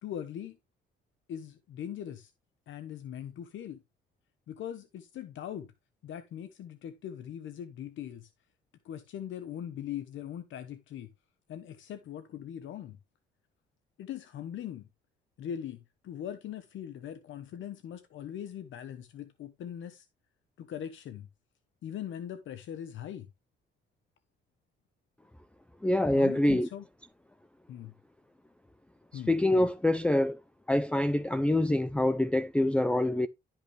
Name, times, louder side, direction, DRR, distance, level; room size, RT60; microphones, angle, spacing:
voice 1, 0.0-0.6 1.3-2.3 2.7-3.8 4.5-5.7 6.0-8.3 8.8-11.1 11.5-13.0 14.0-14.9 15.4-20.1 20.6-21.3 21.8-23.3 26.1-26.8 27.7-27.9 29.1-29.3, left 10 dB, 75° left, 1.1 m, -41 dB
voice 2, 25.8-26.7 29.3-30.4 30.7-33.3, left 1 dB, 5° left, 0.5 m, -25 dB
12.0 x 5.9 x 3.3 m
cardioid pair, 90°, 20 cm